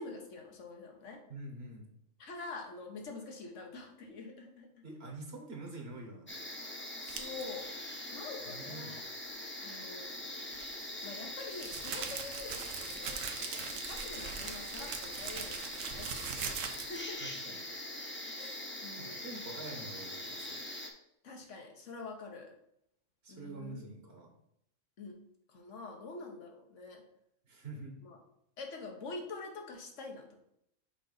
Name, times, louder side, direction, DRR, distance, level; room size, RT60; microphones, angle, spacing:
voice 1, 0.0-1.2 2.2-4.8 7.0-7.7 8.1-9.0 9.6-10.4 11.0-17.2 18.4-19.3 21.2-22.5 23.3-23.9 25.0-25.2 25.5-27.1 28.0-28.2 28.6-30.4, left 3 dB, 75° left, 2 dB, 1.4 m, -46 dB
voice 2, 1.3-1.9 4.8-6.3 8.5-9.0 17.2-17.6 19.0-20.6 23.2-24.3 27.5-28.0, right 2 dB, 55° right, 2 dB, 1.4 m, -46 dB
sound 1, 6.3-20.9, left 1 dB, 10° left, 0.6 m, -43 dB
sound 2, 7.1-7.4 10.5-17.1, right 6 dB, 80° right, 1.1 m, -41 dB
7.2 x 3.9 x 4.0 m, 0.76 s
omnidirectional pair, 1.3 m